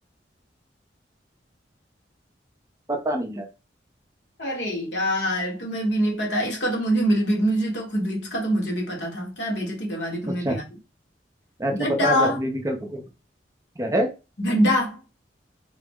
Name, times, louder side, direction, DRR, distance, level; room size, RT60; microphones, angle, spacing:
voice 1, 2.9-3.5 10.3-10.6 11.6-13.0 13.8-14.1, right 1 dB, 20° right, 0.5 m, -26 dB
voice 2, 4.4-10.6 11.7-12.4 14.4-15.0, equal, 70° left, 1.1 m, -24 dB
3.7 x 2.0 x 3.5 m
head